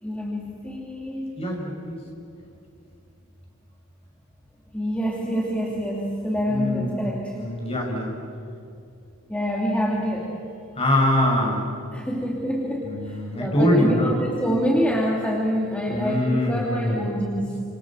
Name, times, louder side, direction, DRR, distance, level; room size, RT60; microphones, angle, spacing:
voice 1, 0.0-1.5 4.7-7.3 9.3-10.4 11.9-17.6, equal, 5° left, -3 dB, 2.8 m, -26 dB
voice 2, 1.4-2.0 6.5-7.0 7.3-8.1 10.8-11.7 12.8-14.1 15.9-17.0, left 1 dB, 30° left, 0 dB, 6.3 m, -23 dB
28.5 x 27.0 x 7.5 m, 2.5 s
head